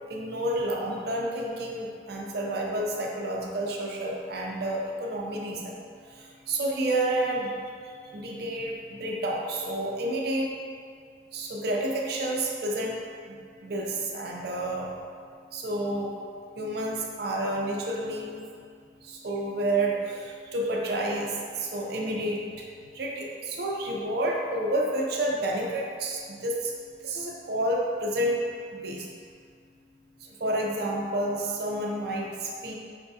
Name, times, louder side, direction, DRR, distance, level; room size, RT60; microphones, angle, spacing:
voice 1, 0.1-5.7 6.1-7.5 7.8-10.5 11.3-13.0 13.3-14.9 15.5-16.1 16.6-18.4 19.0-22.7 22.9-26.7 27.0-28.4 28.7-29.1 30.2-32.7, right 1 dB, 60° right, -1 dB, 0.5 m, -30 dB
4.8 x 3.5 x 2.6 m, 2.2 s
head